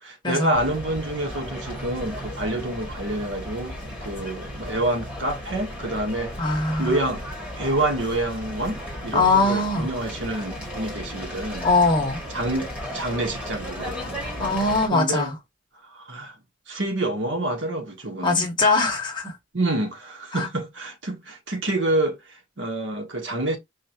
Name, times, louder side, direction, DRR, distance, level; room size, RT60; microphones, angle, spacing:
voice 1, 0.0-6.3 6.8-7.3 7.5-11.7 12.3-14.2 14.8-15.3 15.9-16.3 16.7-18.5 19.5-23.6, right 1 dB, 75° right, 1.2 m, -28 dB
sound 1, 0.5-14.9, equal, 5° right, 1.8 m, -35 dB
voice 2, 6.4-7.0 9.1-9.9 11.6-12.2 14.4-15.4 18.2-19.4 20.3-20.5, left 3 dB, 25° left, 1.4 m, -21 dB
4.8 x 2.8 x 2.9 m
head